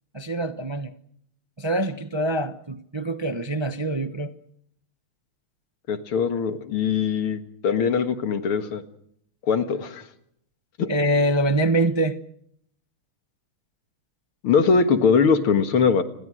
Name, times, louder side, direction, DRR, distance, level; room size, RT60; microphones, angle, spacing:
voice 1, 0.1-0.9 1.6-4.3 10.8-12.2, right 1 dB, 25° right, 0.6 m, -24 dB
voice 2, 5.9-8.8 9.5-10.0 10.8-10.9 14.4-16.0, left 5 dB, 90° left, 2.6 m, -21 dB
29.0 x 21.0 x 6.3 m
omnidirectional pair, 2.3 m